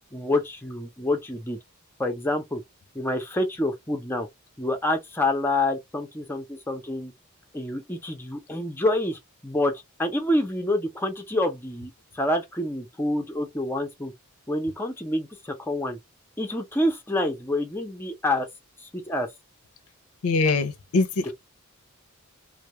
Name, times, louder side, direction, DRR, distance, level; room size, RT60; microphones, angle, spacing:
voice 1, 0.1-1.6 2.0-2.6 2.9-4.3 4.6-7.1 7.5-9.7 10.0-14.1 14.5-16.0 16.4-18.5 18.9-19.3 21.2-21.3, left 1 dB, 10° left, 0.5 m, -27 dB
voice 2, 20.2-21.2, left 3 dB, 85° left, 0.6 m, -23 dB
2.2 x 2.0 x 2.8 m
head